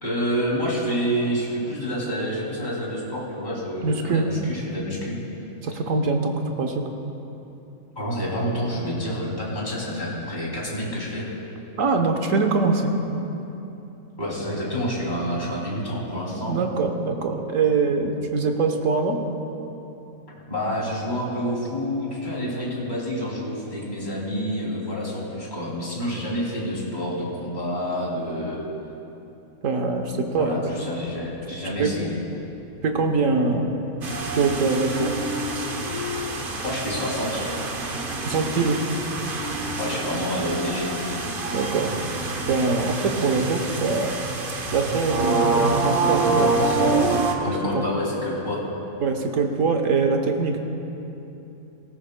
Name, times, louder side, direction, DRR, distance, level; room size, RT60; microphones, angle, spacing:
voice 1, 0.0-5.2 8.0-11.3 14.2-16.6 20.5-28.6 30.2-32.2 36.6-37.4 39.8-40.9 47.4-48.6, equal, 30° left, -5 dB, 2.9 m, -28 dB
voice 2, 3.8-4.3 5.6-6.8 11.8-12.9 16.4-19.2 29.6-31.0 31.8-31.9 32.8-33.7 34.3-35.1 38.2-38.8 41.5-41.9 42.5-44.1 44.7-47.2 47.7-47.8 49.0-50.6, right 4 dB, 60° right, 4 dB, 1.3 m, -23 dB
sound 1, 31.1-33.7 34.0-42.1, left 3 dB, 70° left, 2.1 m, -37 dB
sound 2, 34.0-47.3, right 3 dB, 40° right, 1.0 m, -27 dB
19.0 x 16.5 x 2.2 m, 3.0 s
omnidirectional pair, 1.6 m